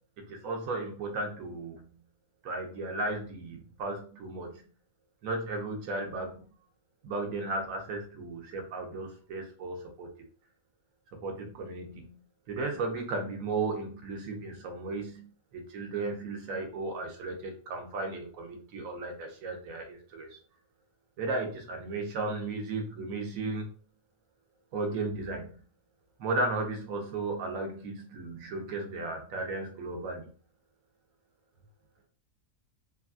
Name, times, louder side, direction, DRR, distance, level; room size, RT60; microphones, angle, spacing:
voice 1, 0.3-1.8 2.4-4.6 5.2-6.4 7.0-10.1 11.2-12.2 12.5-20.4 21.2-23.7 24.7-25.5 26.2-30.3, right 2 dB, 65° right, 3 dB, 1.1 m, -35 dB
3.3 x 2.2 x 2.4 m, 0.40 s
omnidirectional pair, 1.6 m